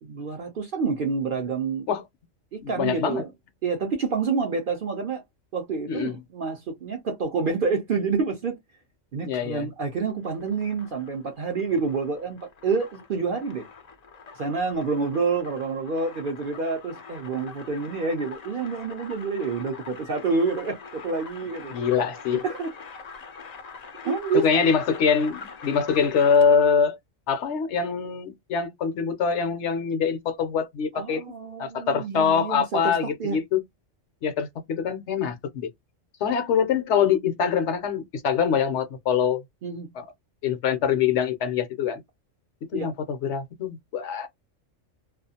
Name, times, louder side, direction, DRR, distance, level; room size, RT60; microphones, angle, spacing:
voice 1, 0.0-1.9 2.5-3.3 3.6-5.2 5.5-8.6 9.1-13.6 14.3-21.8 22.4-22.7 24.0-24.5 30.9-33.4 39.6-39.9 42.7-42.9, right 4 dB, 55° right, 0.6 m, -28 dB
voice 2, 2.6-3.2 5.9-6.1 9.2-9.7 21.7-22.4 24.3-27.0 27.3-31.2 31.6-33.6 34.2-35.7 36.2-39.4 39.9-40.1 40.4-42.0 42.7-44.3, left 6 dB, 70° left, 0.8 m, -24 dB
sound 1, 10.1-26.7, left 5 dB, 55° left, 0.4 m, -44 dB
2.4 x 2.3 x 2.7 m
omnidirectional pair, 1.3 m